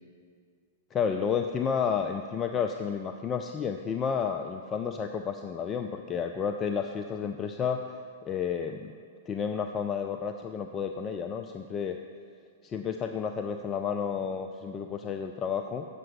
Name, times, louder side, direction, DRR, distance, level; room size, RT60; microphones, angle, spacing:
voice 1, 0.9-7.8 8.3-8.9 9.3-12.0 12.6-15.9, left 6 dB, 25° left, 5 dB, 0.4 m, -31 dB
7.6 x 6.6 x 7.4 m, 2.2 s
figure-of-eight pair, 105°, 0 cm